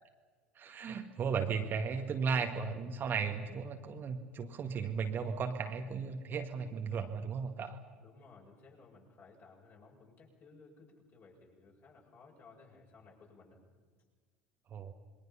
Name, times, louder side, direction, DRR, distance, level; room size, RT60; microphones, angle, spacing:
voice 1, 0.6-7.8 14.7-14.9, right 5 dB, 35° right, 4 dB, 1.9 m, -35 dB
voice 2, 8.0-13.6, left 4 dB, 40° left, -1 dB, 7.4 m, -58 dB
28.0 x 22.5 x 5.8 m, 1.5 s
figure-of-eight pair, 70°, 6 cm